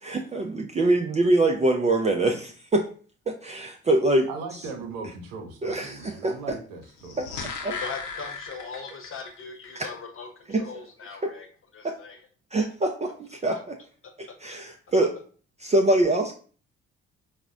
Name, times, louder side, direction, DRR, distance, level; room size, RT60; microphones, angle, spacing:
voice 1, 0.0-2.9 3.3-4.3 5.6-6.6 7.2-7.3 7.6-7.7 9.7-9.9 10.5-10.6 11.2-11.3 11.8-12.0 12.5-13.8 14.4-15.1 15.6-16.3, right 2 dB, 20° right, 1 dB, 0.4 m, -24 dB
voice 2, 4.3-7.2, right 4 dB, 65° right, 4 dB, 0.7 m, -38 dB
sound 1, 6.9-9.3 9.6-9.7, left 4 dB, 60° left, 0.7 m, -36 dB
voice 3, 7.6-11.5 11.7-12.2, left 5 dB, 40° left, 3 dB, 0.9 m, -39 dB
4.8 x 2.1 x 2.4 m, 0.41 s
figure-of-eight pair, 45°, 35 cm